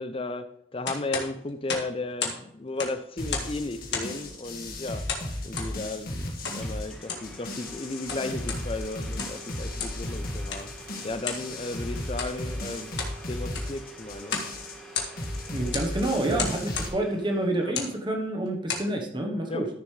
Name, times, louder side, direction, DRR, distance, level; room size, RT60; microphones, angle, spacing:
voice 1, 0.0-5.1 5.4-10.7 11.0-12.9 13.3-14.4 16.3-16.4 17.6-17.8 19.5-19.7, left 2 dB, 30° left, 0.6 m, -34 dB
sound 1, 0.8-2.4 2.7-3.6 3.9-4.2 5.1-5.7 6.4-6.6 7.0-7.3 7.9-8.6 9.0-9.4 9.8-10.0 10.5-10.7 11.2-11.5 12.1-12.3 12.8-13.2 13.5-13.8 14.2-14.5 14.8-15.3 15.7-15.9 16.4-16.9 17.6-17.9 18.5-18.9, left 5 dB, 80° left, 1.9 m, -33 dB
sound 2, 3.2-16.9, left 1 dB, 55° left, 1.9 m, -35 dB
Domestic sounds home sounds, 6.1-6.2 6.6-17.7, right 2 dB, 5° left, 1.5 m, -47 dB
voice 2, 15.5-19.6, right 1 dB, 25° right, 1.2 m, -28 dB
13.5 x 6.9 x 3.3 m
head